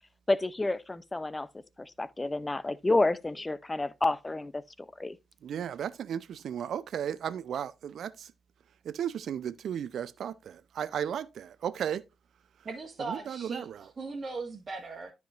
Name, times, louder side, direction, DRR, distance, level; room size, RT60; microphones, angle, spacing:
voice 1, 0.3-1.5 1.8-4.6 5.0-5.2, left 2 dB, 20° left, 0.6 m, -29 dB
voice 2, 5.4-8.3 8.9-12.0 13.1-13.8, right 9 dB, 60° right, 0.5 m, -35 dB
voice 3, 12.6-15.1, right 3 dB, 35° right, 1.5 m, -38 dB
13.0 x 4.9 x 2.5 m
figure-of-eight pair, 40°, 0 cm